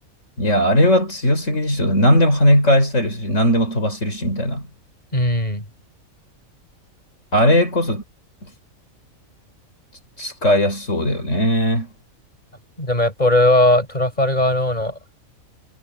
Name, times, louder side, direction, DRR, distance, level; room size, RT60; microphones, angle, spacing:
voice 1, 0.4-4.7 7.3-8.0 10.2-11.9, equal, 60° left, 7.1 m, -18 dB
voice 2, 5.1-5.6 12.8-14.9, left 1 dB, 30° left, 8.2 m, -18 dB
omnidirectional pair, 1.4 m